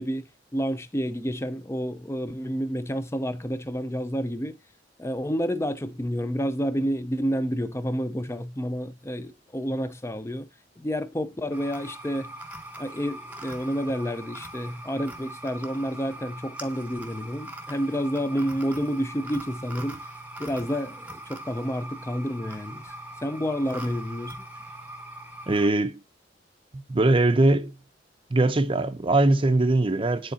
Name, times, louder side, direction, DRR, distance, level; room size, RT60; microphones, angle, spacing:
voice 1, 0.0-4.6 5.0-10.5 10.8-12.3 12.8-20.0 20.4-22.9 23.2-24.4, equal, 15° left, 0.5 m, -29 dB
sound 1, 11.5-25.7, right 1 dB, 10° right, 1.0 m, -41 dB
voice 2, 25.5-26.0 26.7-27.8 28.3-30.3, right 2 dB, 30° right, 0.6 m, -21 dB
9.6 x 4.0 x 2.7 m
head